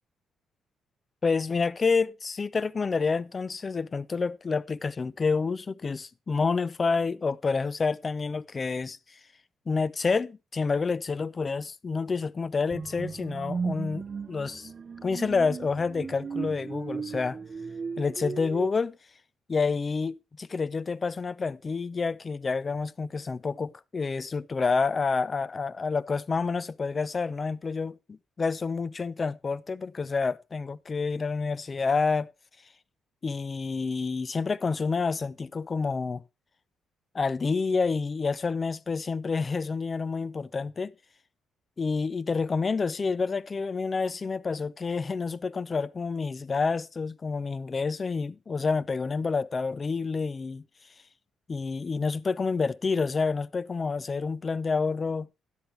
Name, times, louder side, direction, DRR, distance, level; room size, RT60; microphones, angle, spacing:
voice 1, 1.2-9.2 9.7-14.7 15.0-17.4 18.0-19.0 19.5-32.3 33.2-36.2 37.1-40.9 41.8-50.6 51.5-55.3, left 4 dB, 35° left, 0.5 m, -28 dB
sound 1, 12.7-18.7, right 5 dB, 40° right, 0.7 m, -36 dB
12.5 x 10.0 x 3.2 m
cardioid pair, 90°, 0 cm